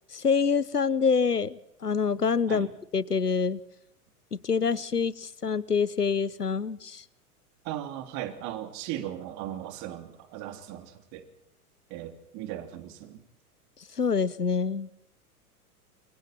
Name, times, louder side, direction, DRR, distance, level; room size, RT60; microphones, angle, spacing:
voice 1, 0.1-2.7 2.9-3.6 4.3-7.0 13.9-14.9, left 5 dB, 85° left, 21 dB, 1.0 m, -26 dB
voice 2, 7.6-11.3 11.9-13.2, right 12 dB, 35° right, 8 dB, 3.3 m, -37 dB
28.0 x 24.0 x 4.4 m, 0.80 s
figure-of-eight pair, 95°, 46 cm